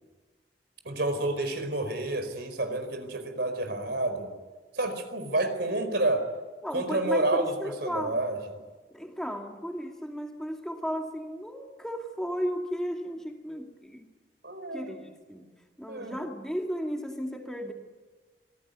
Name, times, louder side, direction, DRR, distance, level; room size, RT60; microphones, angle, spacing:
voice 1, 0.8-4.3 4.7-6.2 6.7-8.4 14.4-15.0 15.9-16.2, right 2 dB, 65° right, 8 dB, 4.7 m, -29 dB
voice 2, 6.6-8.2 8.9-14.1 14.7-15.5 15.8-17.7, equal, 5° left, 2 dB, 2.2 m, -35 dB
27.0 x 19.0 x 9.6 m, 1.3 s
head